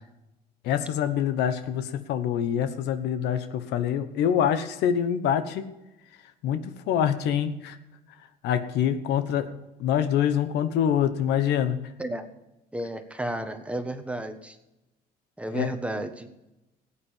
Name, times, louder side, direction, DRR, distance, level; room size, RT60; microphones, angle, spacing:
voice 1, 0.6-5.7 6.4-7.8 8.4-11.8 15.5-15.7, left 9 dB, 85° left, 10 dB, 1.2 m, -25 dB
voice 2, 12.7-14.6 15.4-16.3, right 1 dB, 5° right, 7 dB, 1.4 m, -32 dB
16.0 x 8.7 x 7.2 m, 0.94 s
cardioid pair, 110°, 17 cm